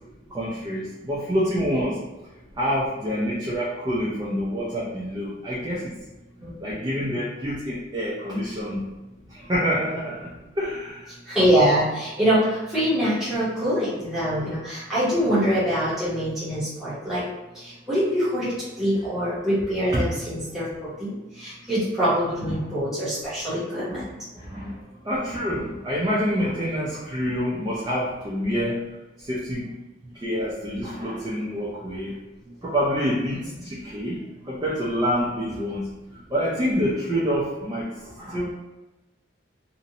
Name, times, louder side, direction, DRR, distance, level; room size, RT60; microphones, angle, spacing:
voice 1, 0.3-2.0 2.6-5.9 6.6-8.8 9.3-10.3 10.6-11.1 19.9-20.0 22.4-22.5 23.7-24.8 25.0-28.8 29.2-29.7 30.1-32.2 32.6-35.9 36.3-38.5, equal, 20° right, -7 dB, 0.4 m, -27 dB
voice 2, 11.3-17.2 17.6-24.0 33.3-33.5, equal, ahead, -13 dB, 0.8 m, -24 dB
2.6 x 2.0 x 2.7 m, 1.1 s
head